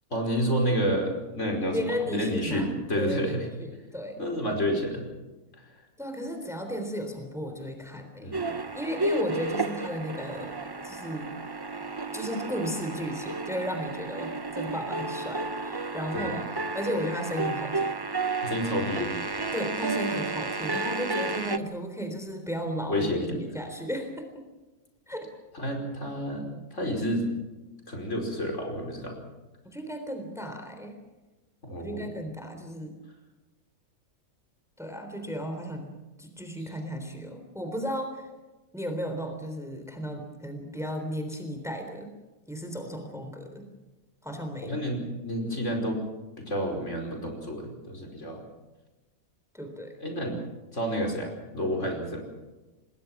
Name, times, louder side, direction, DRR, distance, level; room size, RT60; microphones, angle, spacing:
voice 1, 0.1-1.8 2.1-3.5 4.2-5.1 8.2-8.5 16.1-16.3 18.4-19.3 22.9-23.4 25.5-27.3 27.9-29.2 31.6-32.1 44.6-46.0 46.4-48.4 50.0-50.4 50.7-52.2, equal, 55° left, 2 dB, 5.4 m, -29 dB
voice 2, 1.7-3.3 3.6-4.2 6.0-8.4 8.7-10.6 10.8-11.4 12.1-16.4 16.7-18.0 19.5-24.4 25.1-25.3 29.6-31.0 31.8-32.9 34.8-35.9 36.2-38.3 38.7-42.1 42.5-43.7 44.2-44.8 49.5-50.0, equal, ahead, 5 dB, 3.5 m, -34 dB
sound 1, 8.3-21.6, right 3 dB, 20° right, 0.7 m, -32 dB
28.0 x 20.5 x 6.0 m, 1.1 s
omnidirectional pair, 1.5 m